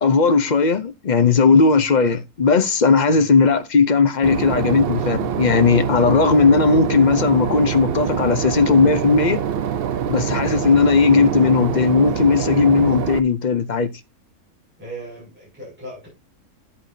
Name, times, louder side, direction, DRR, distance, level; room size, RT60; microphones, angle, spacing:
voice 1, 0.0-9.4 10.1-13.9, left 4 dB, 45° left, 0.6 m, -17 dB
Boat Water vehicle / Engine, 4.2-13.2, right 8 dB, 60° right, 0.6 m, -24 dB
voice 2, 14.8-16.1, equal, 5° right, 6.4 m, -38 dB
11.0 x 8.6 x 2.7 m
omnidirectional pair, 1.6 m